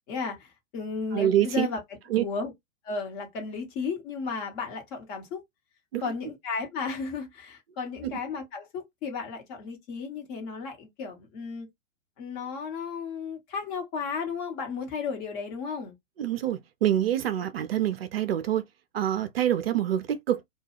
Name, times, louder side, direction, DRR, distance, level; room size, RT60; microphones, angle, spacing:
voice 1, 0.1-1.8 2.1-2.5 2.8-5.4 6.0-11.7 12.2-15.9, left 5 dB, 30° left, 1.0 m, -34 dB
voice 2, 1.1-1.7 2.1-2.2 5.9-6.0 8.0-8.2 16.2-18.6 18.9-20.4, right 11 dB, 50° right, 0.4 m, -26 dB
2.2 x 2.2 x 3.3 m
figure-of-eight pair, 100°, 38 cm